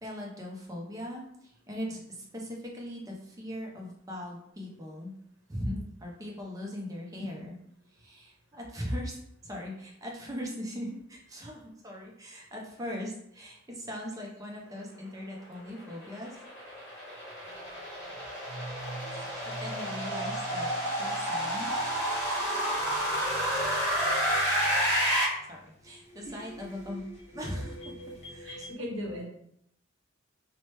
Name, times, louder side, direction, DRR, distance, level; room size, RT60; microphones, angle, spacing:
voice 1, 0.0-5.1 5.5-5.7 6.0-7.6 7.9-16.4 19.1-19.3 19.6-20.7 21.0-22.1 25.5-27.0 27.3-27.8 28.3-28.7, equal, 15° right, -1 dB, 0.5 m, -39 dB
sound 1, 15.7-25.2, equal, 15° left, 1.2 m, -30 dB
sound 2, 17.4-28.7, right 1 dB, 35° left, 0.6 m, -46 dB
voice 2, 28.4-29.3, left 1 dB, 65° right, -1 dB, 0.9 m, -37 dB
2.9 x 2.1 x 3.1 m, 0.73 s
head